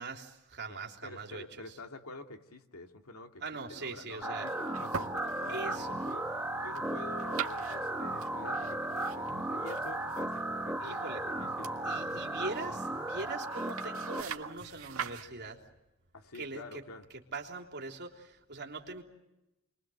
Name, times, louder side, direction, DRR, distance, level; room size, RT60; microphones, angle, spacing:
voice 1, 0.0-1.4 3.4-4.5 5.5-6.0 10.8-11.2 11.8-15.6 16.3-16.8 17.3-19.0, right 3 dB, 50° right, 2 dB, 3.4 m, -41 dB
voice 2, 0.7-3.4 3.7-11.8 16.1-17.1, left 2 dB, 85° left, 4 dB, 2.6 m, -48 dB
sound 1, 4.2-14.2, right 1 dB, 10° right, 1.7 m, -35 dB
sound 2, 4.4-15.3, right 7 dB, 75° right, 1.8 m, -45 dB
sound 3, 5.5-13.3, left 1 dB, 50° left, 7.1 m, -56 dB
30.0 x 23.0 x 7.8 m, 0.97 s
head